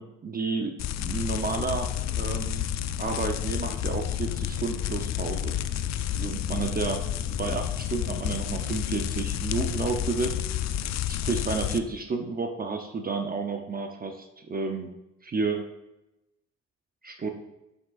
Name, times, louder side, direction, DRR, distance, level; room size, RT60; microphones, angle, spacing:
voice 1, 0.0-2.7 3.0-5.5 6.1-7.0 7.4-10.3 11.1-14.9 15.2-15.6 17.0-17.3, right 4 dB, 30° right, 4 dB, 0.6 m, -31 dB
sound 1, 0.8-11.8, left 10 dB, 60° left, 0.4 m, -30 dB
7.1 x 6.4 x 2.4 m, 0.93 s
cardioid pair, 90°, 30 cm